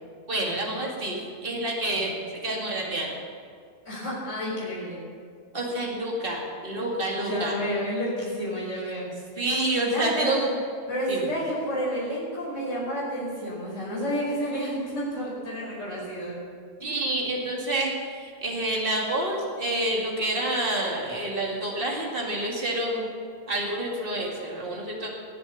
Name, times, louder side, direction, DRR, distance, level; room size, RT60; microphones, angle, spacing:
voice 1, 0.3-2.1 2.4-3.2 5.5-7.5 9.4-10.6 11.1-11.3 16.8-23.1 23.5-25.1, right 1 dB, 45° right, -2 dB, 2.6 m, -28 dB
voice 2, 3.9-5.0 7.2-9.1 9.8-10.4 10.9-16.4, equal, 70° left, -7 dB, 5.6 m, -30 dB
20.0 x 7.9 x 7.3 m, 2.1 s
omnidirectional pair, 1.3 m